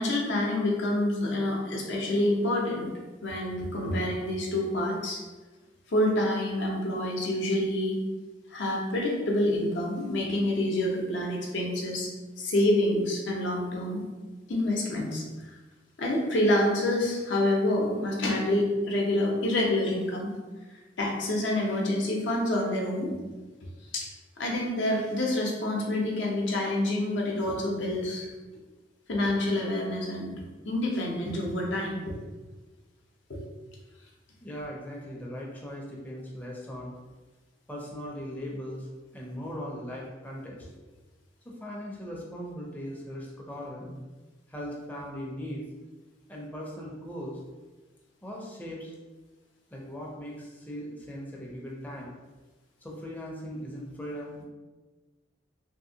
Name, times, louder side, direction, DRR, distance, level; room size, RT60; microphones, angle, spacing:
voice 1, 0.0-2.9 3.2-5.2 5.9-8.0 8.5-12.1 12.4-14.0 14.5-15.2 16.0-20.3 21.0-23.1 23.9-24.1 24.4-28.3 29.1-30.3 30.6-32.2 33.3-33.5, left 1 dB, 75° left, -1 dB, 0.6 m, -27 dB
voice 2, 34.4-36.9 37.7-38.9 39.1-40.7 41.5-44.0 44.5-45.6 46.3-47.4 48.2-48.9 49.7-52.1 52.8-54.4, equal, 10° left, -3 dB, 0.4 m, -39 dB
2.7 x 2.7 x 2.6 m, 1.2 s
head